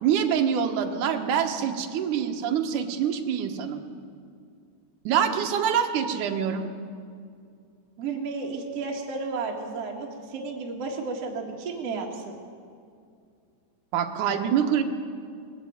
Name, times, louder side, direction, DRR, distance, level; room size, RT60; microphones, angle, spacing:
voice 1, 0.0-3.8 5.0-6.7 13.9-14.8, right 8 dB, 65° right, 4 dB, 2.4 m, -25 dB
voice 2, 8.0-12.3, right 4 dB, 45° right, -1 dB, 2.4 m, -32 dB
20.5 x 14.5 x 9.4 m, 2.3 s
omnidirectional pair, 4.6 m